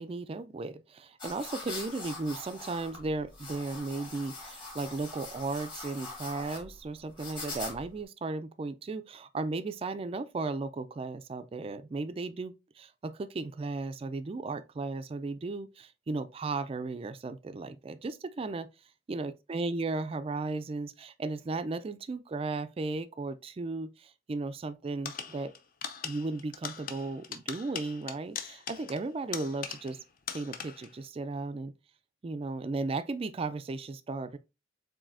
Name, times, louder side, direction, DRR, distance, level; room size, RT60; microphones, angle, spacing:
voice 1, 0.0-18.7 19.1-25.5 26.0-30.0 30.3-31.7 32.2-34.4, right 3 dB, 30° right, 0.3 m, -35 dB
sound 1, 1.2-8.0, left 3 dB, 25° left, 1.5 m, -43 dB
sound 2, 25.1-30.0 30.3-31.0, left 7 dB, 45° left, 0.6 m, -41 dB
7.2 x 2.7 x 2.5 m
head